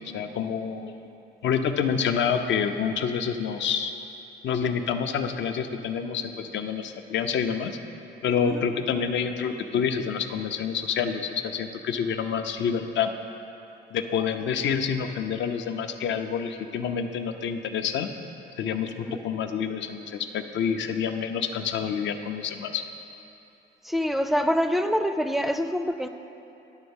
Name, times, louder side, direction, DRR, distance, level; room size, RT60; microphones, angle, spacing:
voice 1, 0.1-0.9 1.4-3.9 4.4-7.8 8.2-13.1 13.9-18.1 18.6-22.8, left 7 dB, 70° left, 7 dB, 0.6 m, -28 dB
voice 2, 23.8-26.1, equal, ahead, 8 dB, 0.4 m, -25 dB
10.5 x 3.6 x 7.1 m, 2.8 s
cardioid pair, 90°, 20 cm